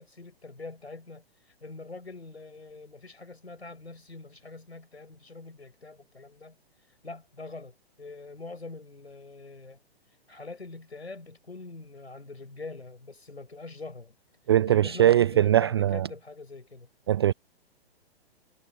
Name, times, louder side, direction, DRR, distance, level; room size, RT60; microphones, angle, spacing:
voice 1, 0.0-6.6 7.0-9.8 10.3-14.2 14.7-16.9, left 3 dB, 85° left, 6.2 m, -44 dB
voice 2, 14.5-16.1 17.1-17.3, right 11 dB, 25° right, 0.4 m, -21 dB
figure-of-eight pair, 125°, 32 cm